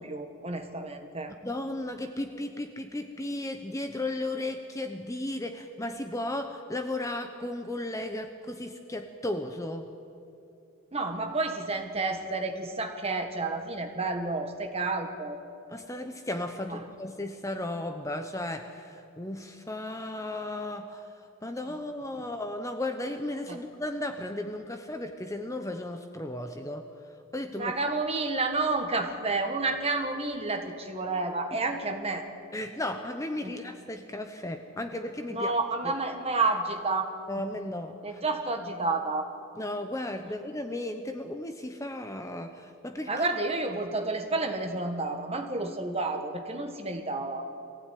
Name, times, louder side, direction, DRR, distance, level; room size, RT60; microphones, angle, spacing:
voice 1, 0.0-1.3 10.9-15.4 16.7-16.8 22.2-22.3 23.5-23.6 27.5-32.2 33.4-33.5 35.3-37.1 38.0-39.3 43.1-47.5, right 3 dB, 25° right, 5 dB, 1.6 m, -30 dB
voice 2, 1.4-9.9 15.7-26.9 27.3-27.7 31.5-31.6 32.5-35.6 35.8-35.9 37.3-38.2 39.6-43.3, left 1 dB, 15° left, 6 dB, 0.8 m, -35 dB
23.0 x 15.5 x 9.3 m, 2.6 s
head